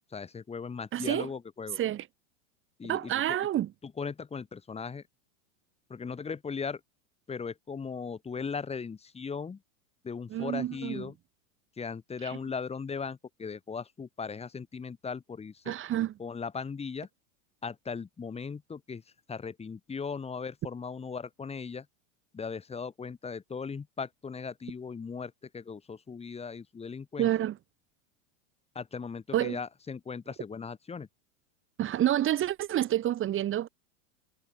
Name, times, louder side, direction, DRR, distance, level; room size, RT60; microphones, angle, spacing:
voice 1, 0.0-1.8 2.8-3.1 3.8-5.0 5.9-6.8 7.3-9.6 10.0-11.1 11.8-15.7 16.2-17.1 17.6-19.0 19.3-21.9 22.3-27.3 28.7-31.1, left 5 dB, 15° left, 6.1 m, -38 dB
voice 2, 0.9-1.3 1.8-2.1 2.8-3.7 10.3-11.1 12.2-12.4 15.6-16.1 27.2-27.6 29.3-29.6 31.8-33.7, right 12 dB, 30° right, 4.7 m, -28 dB
supercardioid pair, 140°, 40 cm